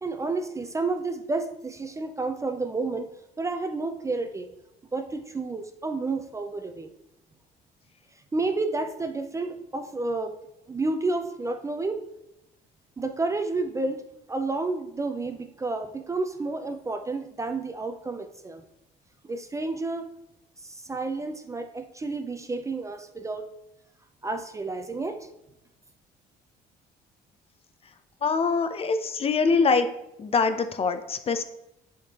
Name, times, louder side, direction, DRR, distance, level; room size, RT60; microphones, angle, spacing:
voice 1, 0.0-3.1 3.4-4.5 4.9-6.9 8.3-10.3 10.7-12.0 13.0-14.0 14.3-18.6 19.2-20.1 20.6-23.5 24.2-25.2, right 3 dB, 20° right, 8 dB, 0.4 m, -30 dB
voice 2, 28.2-29.9 30.2-31.4, left 4 dB, 35° left, 9 dB, 0.5 m, -24 dB
10.5 x 3.6 x 2.9 m, 0.85 s
cardioid pair, 110°, 17 cm